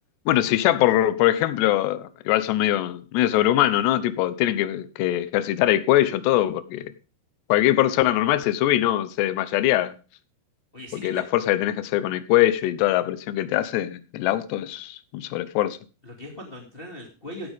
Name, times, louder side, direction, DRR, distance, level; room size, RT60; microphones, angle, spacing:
voice 1, 0.3-6.9 7.5-10.0 10.9-15.8, left 14 dB, 75° left, 2.9 m, -22 dB
voice 2, 10.7-11.2 16.0-17.5, left 1 dB, 20° left, 1.7 m, -39 dB
16.0 x 8.5 x 3.5 m
omnidirectional pair, 5.2 m